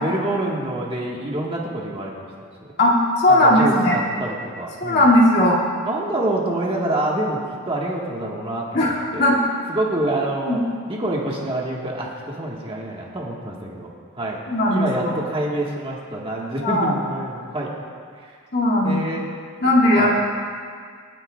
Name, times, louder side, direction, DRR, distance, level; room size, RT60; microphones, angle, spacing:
voice 1, 0.0-2.5 3.3-5.1 5.8-7.4 7.7-9.3 9.7-10.6 10.9-13.9 14.1-14.4 14.7-17.7 18.2-18.4 18.8-19.3 19.6-20.1, right 1 dB, 25° right, -3 dB, 1.5 m, -27 dB
voice 2, 2.8-4.0 4.8-5.6 8.7-9.3 10.5-10.6 14.5-15.1 16.6-16.9 18.5-19.0 19.6-20.1, left 1 dB, 50° left, -5 dB, 2.4 m, -17 dB
27.5 x 9.9 x 2.4 m, 2.1 s
head